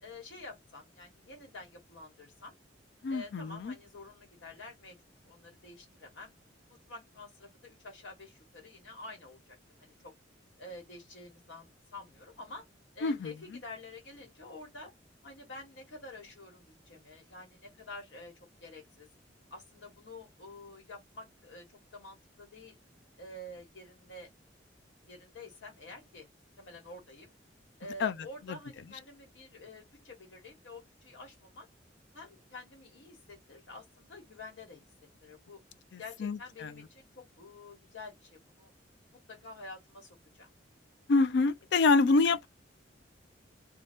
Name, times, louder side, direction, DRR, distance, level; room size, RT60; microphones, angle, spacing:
voice 1, 0.0-2.5 3.1-5.0 5.2-6.3 6.7-10.1 10.6-12.6 12.9-14.9 15.2-18.3 18.6-19.1 19.5-22.8 23.2-24.3 25.0-26.3 26.6-27.3 27.8-31.7 32.1-34.8 35.2-35.6 36.0-38.7 39.1-40.5, left 2 dB, 80° left, 1.2 m, -48 dB
voice 2, 3.0-3.8 13.0-13.3 28.0-28.1 28.5-28.6 35.9-36.7 41.1-42.5, left 3 dB, 60° left, 0.4 m, -27 dB
2.6 x 2.2 x 3.3 m
head